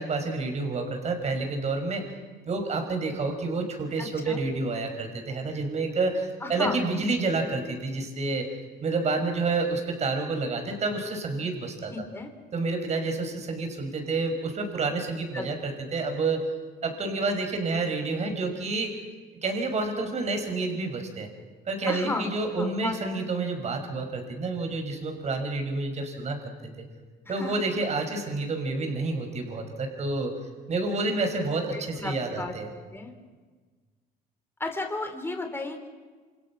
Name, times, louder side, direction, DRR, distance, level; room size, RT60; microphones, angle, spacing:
voice 1, 0.0-2.0 2.5-8.5 8.8-11.9 12.5-16.5 16.8-19.0 19.4-21.3 21.7-26.9 27.3-30.4 30.7-32.7, right 3 dB, 40° right, 5 dB, 5.8 m, -29 dB
voice 2, 4.0-4.4 6.4-6.8 11.9-12.3 15.3-15.6 21.9-22.3 22.6-23.0 27.3-27.5 31.7-33.1 34.6-35.9, left 2 dB, 15° left, 5 dB, 3.5 m, -34 dB
28.5 x 27.0 x 6.1 m, 1.4 s
cardioid pair, 110°, 17 cm